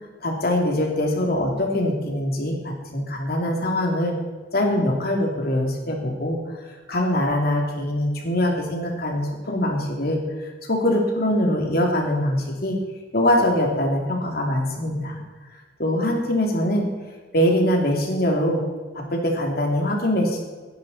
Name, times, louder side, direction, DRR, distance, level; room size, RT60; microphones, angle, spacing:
voice 1, 0.2-4.2 4.5-6.4 6.9-12.8 13.1-15.2 15.8-16.9 17.3-18.6 18.9-20.4, left 1 dB, 55° left, 1 dB, 2.8 m, -23 dB
18.0 x 10.5 x 4.2 m, 1.4 s
head